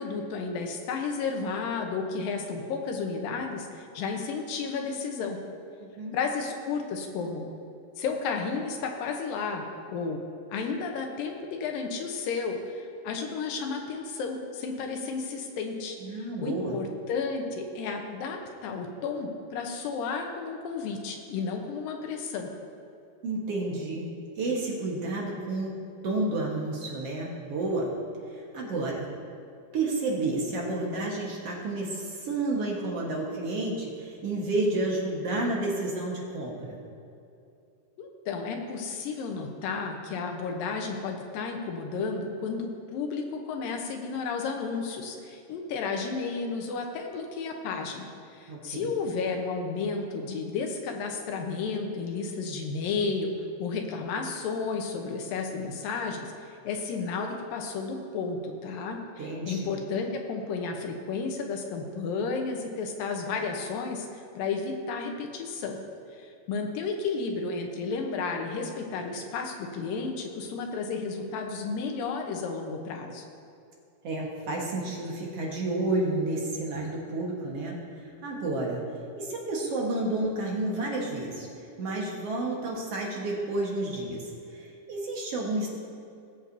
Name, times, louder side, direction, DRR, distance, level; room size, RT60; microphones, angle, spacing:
voice 1, 0.0-5.4 6.1-7.5 8.0-10.2 10.5-22.5 38.0-53.3 53.6-65.8 66.1-73.2, left 4 dB, 85° left, 3 dB, 2.7 m, -32 dB
voice 2, 5.8-6.2 16.0-16.8 23.2-24.1 24.4-25.8 26.0-27.9 28.3-29.1 29.7-36.8 48.5-48.9 59.2-59.8 74.0-78.8 79.2-81.5 81.8-85.7, right 2 dB, 55° right, -3 dB, 2.1 m, -31 dB
19.0 x 7.6 x 2.7 m, 2.6 s
omnidirectional pair, 3.9 m